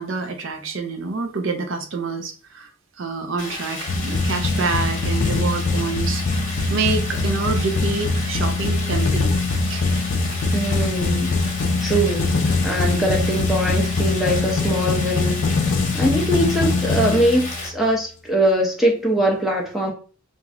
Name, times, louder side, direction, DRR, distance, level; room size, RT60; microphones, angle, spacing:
voice 1, 0.0-2.7 3.0-6.2 6.7-9.3 9.7-9.9 12.9-13.0, right 4 dB, 70° right, 0.6 m, -27 dB
Stream, 3.4-17.7, left 2 dB, 40° left, 1.0 m, -33 dB
sound 1, 3.9-17.8, left 3 dB, 60° left, 0.3 m, -22 dB
voice 2, 10.5-11.4 11.8-15.6 15.9-19.9, right 1 dB, ahead, 0.5 m, -22 dB
3.0 x 2.5 x 2.3 m
head